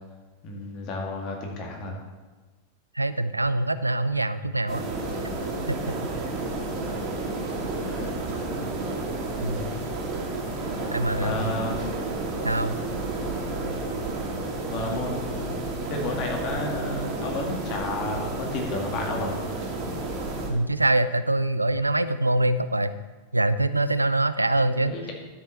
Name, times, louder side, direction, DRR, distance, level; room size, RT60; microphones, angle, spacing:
voice 1, 0.4-2.0 7.7-8.1 11.2-11.8 14.6-19.4 24.9-25.1, left 2 dB, 40° left, 0 dB, 2.3 m, -32 dB
voice 2, 2.9-4.8 5.7-5.8 9.4-9.6 10.9-11.6 12.4-12.8 20.5-22.9 23.3-24.9, right 2 dB, 85° right, 13 dB, 0.4 m, -24 dB
sound 1, 4.7-20.5, right 2 dB, 35° right, 2.3 m, -31 dB
12.5 x 6.7 x 4.3 m, 1.3 s
figure-of-eight pair, 90°, 0 cm